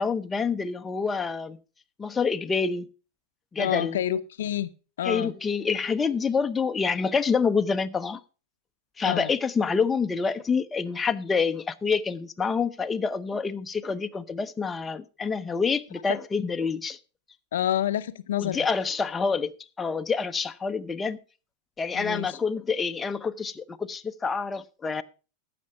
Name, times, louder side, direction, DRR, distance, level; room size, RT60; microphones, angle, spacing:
voice 1, 0.0-1.6 2.0-2.9 3.5-4.0 5.0-8.2 9.0-17.0 18.4-21.2 21.8-25.0, left 5 dB, 20° left, 0.7 m, -27 dB
voice 2, 3.6-4.7 5.0-5.3 9.0-9.3 16.1-16.2 17.5-18.7 21.9-22.4, left 11 dB, 80° left, 0.6 m, -28 dB
14.5 x 6.0 x 5.4 m
hypercardioid pair, 105°, 0 cm